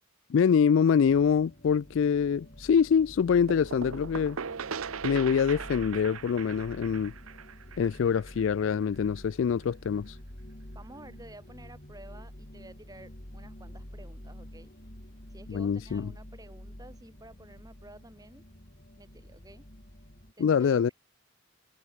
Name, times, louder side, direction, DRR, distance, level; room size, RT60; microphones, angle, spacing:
voice 1, 0.3-4.4 5.0-7.1 7.8-10.1 15.5-16.1 20.4-20.9, left 7 dB, 65° left, 0.3 m, -25 dB
sound 1, 1.0-20.3, equal, 40° left, 4.0 m, -48 dB
sound 2, 3.5-9.1, right 6 dB, 85° right, 0.8 m, -39 dB
voice 2, 10.7-14.7 15.3-18.4 19.0-19.7 20.4-20.9, right 1 dB, 15° right, 7.6 m, -51 dB
head